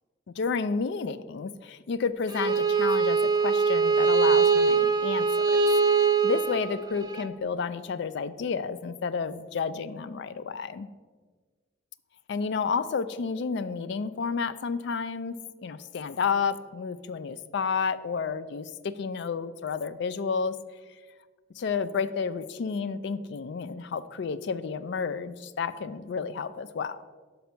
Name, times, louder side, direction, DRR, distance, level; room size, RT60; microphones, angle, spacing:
voice 1, 0.4-10.9 12.3-15.4 15.6-20.6 21.5-27.0, left 5 dB, 60° left, 14 dB, 0.3 m, -31 dB
Bowed string instrument, 2.3-7.3, right 5 dB, 20° right, 0.3 m, -23 dB
5.6 x 5.2 x 5.8 m, 1.4 s
head